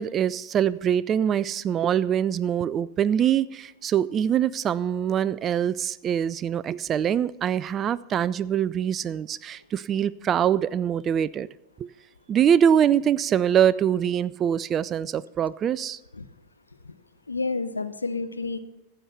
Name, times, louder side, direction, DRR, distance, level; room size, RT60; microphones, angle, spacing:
voice 1, 0.0-11.5 11.8-11.9 12.3-16.0, right 9 dB, 25° right, 0.3 m, -24 dB
voice 2, 17.3-18.6, left 3 dB, 80° left, 0.7 m, -30 dB
14.5 x 8.0 x 5.7 m
figure-of-eight pair, 90°, 0 cm